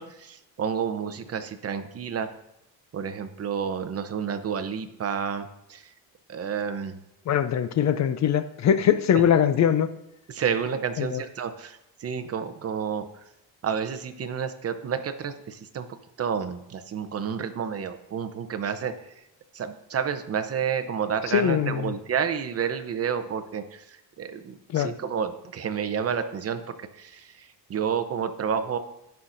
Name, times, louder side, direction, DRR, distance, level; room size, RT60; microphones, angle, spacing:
voice 1, 0.0-2.3 2.9-5.8 6.3-7.0 9.1-9.2 10.3-13.0 13.6-15.9 16.2-18.9 19.5-23.8 24.2-28.8, right 7 dB, 35° right, 8 dB, 0.8 m, -30 dB
voice 2, 7.3-9.9 11.0-11.2 21.3-21.9 24.7-24.9, left 9 dB, 45° left, 12 dB, 0.5 m, -22 dB
17.0 x 5.8 x 2.6 m, 0.86 s
cardioid pair, 125°, 40 cm